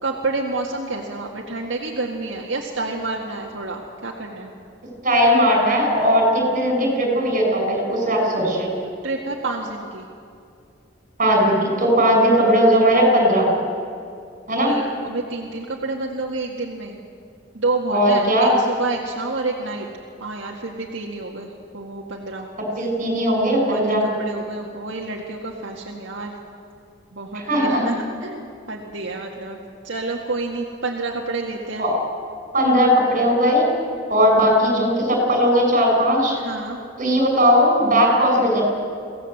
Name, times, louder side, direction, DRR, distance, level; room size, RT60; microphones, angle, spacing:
voice 1, 0.0-4.5 9.0-10.1 14.6-17.0 17.5-19.9 20.2-22.5 23.6-23.8 24.2-26.4 27.1-29.6 29.8-31.8 34.2-34.3 36.4-36.8, right 3 dB, 75° right, -1 dB, 1.9 m, -29 dB
voice 2, 5.0-8.7 11.2-13.5 14.5-14.7 17.9-18.6 22.8-24.0 27.3-27.9 31.8-31.9 32.5-33.6 34.1-36.3 37.0-38.6, equal, 45° right, 1 dB, 5.8 m, -18 dB
24.0 x 16.5 x 7.8 m, 2.4 s
head